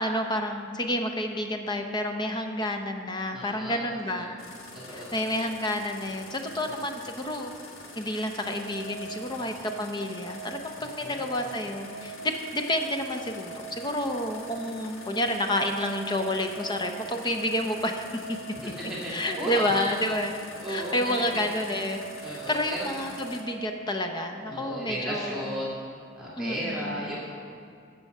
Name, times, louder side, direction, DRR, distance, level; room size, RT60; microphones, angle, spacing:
voice 1, 0.0-4.4 4.9-7.5 8.0-18.4 19.1-20.4 20.7-25.6 26.4-27.0, left 1 dB, 20° left, 4 dB, 0.7 m, -30 dB
voice 2, 3.3-3.8 4.1-4.3 4.7-5.0 6.7-6.9 9.4-9.6 10.8-11.3 18.6-19.8 20.6-21.5 22.2-23.0 24.5-25.8 26.2-27.3, equal, ahead, -8 dB, 2.4 m, -35 dB
sound 1, 4.4-23.4, left 3 dB, 80° left, 1.4 m, -46 dB
sound 2, 7.6-25.6, right 3 dB, 65° left, 2.8 m, -43 dB
13.5 x 7.0 x 5.5 m, 2.3 s
head